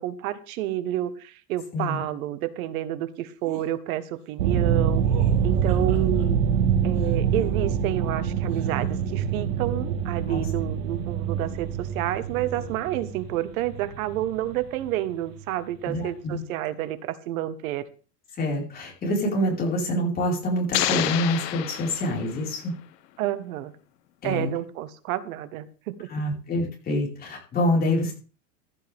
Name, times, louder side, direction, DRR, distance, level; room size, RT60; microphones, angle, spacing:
voice 1, 0.0-5.0 5.4-6.5 6.8-17.9 23.2-23.7 24.2-26.1, right 13 dB, 55° right, 13 dB, 1.5 m, -29 dB
sound 1, 3.4-3.7 5.0-6.3 6.9-7.9 8.5-9.0, right 7 dB, 35° right, 7.0 m, -43 dB
sound 2, 4.4-15.4, right 7 dB, 80° right, 1.9 m, -25 dB
voice 2, 15.8-16.4 18.4-22.7 24.2-24.5 26.1-28.1, left 1 dB, 20° left, -2 dB, 5.2 m, -26 dB
sound 3, 20.7-22.6, left 13 dB, 80° left, 1.6 m, -28 dB
15.5 x 11.5 x 3.6 m, 0.36 s
supercardioid pair, 160°, 49 cm